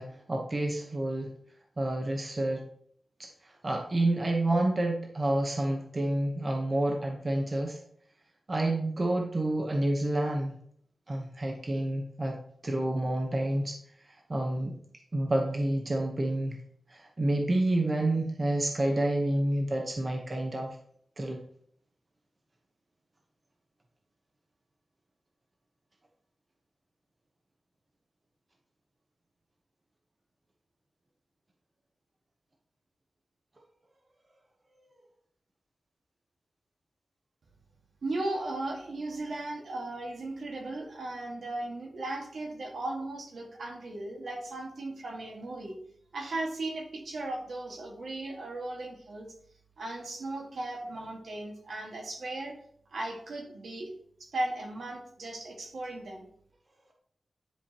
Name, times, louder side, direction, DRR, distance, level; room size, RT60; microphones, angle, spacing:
voice 1, 0.0-1.3 1.8-2.6 3.4-7.8 8.5-10.5 11.1-12.4 12.6-13.8 14.3-14.8 15.1-16.6 16.9-20.7 21.2-21.4, right 1 dB, 30° right, 1 dB, 1.0 m, -29 dB
voice 2, 38.0-45.8 46.1-49.3 49.8-52.6 52.9-53.9 54.2-56.3, right 2 dB, 75° right, 0 dB, 1.8 m, -36 dB
10.5 x 5.0 x 2.9 m, 0.64 s
wide cardioid pair, 145°, 0 cm